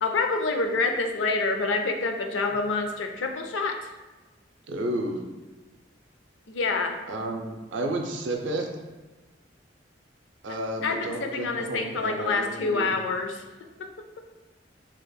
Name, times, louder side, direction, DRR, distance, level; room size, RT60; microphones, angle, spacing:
voice 1, 0.0-3.9 6.5-7.0 10.8-13.4 13.8-13.9, left 3 dB, 80° left, 4 dB, 0.5 m, -27 dB
voice 2, 4.7-5.2 7.1-8.7 10.4-12.9, right 1 dB, 85° right, 3 dB, 0.5 m, -31 dB
4.9 x 2.9 x 2.2 m, 1.2 s
head